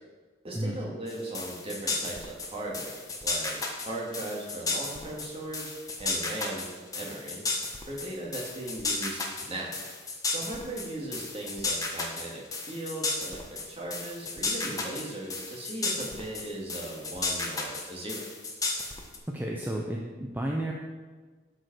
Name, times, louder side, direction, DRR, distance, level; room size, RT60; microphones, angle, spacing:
voice 1, 0.4-3.0 3.2-5.7 6.0-7.4 7.9-9.8 10.3-18.2, right 1 dB, 30° right, -3 dB, 2.1 m, -38 dB
sound 1, 1.1-19.2, left 3 dB, 20° left, 1.3 m, -33 dB
voice 2, 19.3-20.7, right 1 dB, 10° right, -1 dB, 0.8 m, -32 dB
12.0 x 5.4 x 6.1 m, 1.4 s
head